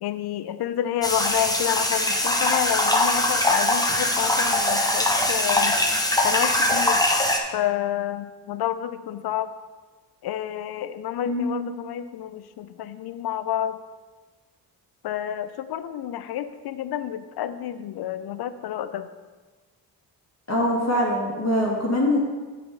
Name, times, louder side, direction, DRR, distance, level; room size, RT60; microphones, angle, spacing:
voice 1, 0.0-5.8 6.2-7.2 7.5-9.5 10.2-13.8 15.0-19.1, left 11 dB, 55° left, 13 dB, 0.6 m, -29 dB
sound 1, 1.0-7.4, left 1 dB, 10° left, 1.2 m, -22 dB
voice 2, 11.3-11.7 20.5-22.2, left 1 dB, 35° left, -3 dB, 1.9 m, -23 dB
7.7 x 5.5 x 5.2 m, 1.3 s
hypercardioid pair, 45°, 45 cm